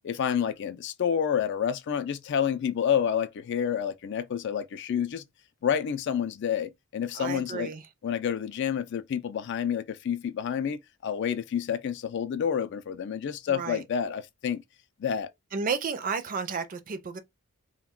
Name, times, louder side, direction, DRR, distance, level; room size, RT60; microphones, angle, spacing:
voice 1, 0.0-5.2 5.6-7.7 8.0-14.6 15.0-15.3, left 8 dB, 60° left, 0.3 m, -29 dB
voice 2, 7.1-7.8 13.5-13.8 15.5-17.2, right 5 dB, 40° right, 0.4 m, -32 dB
2.3 x 2.2 x 3.5 m
head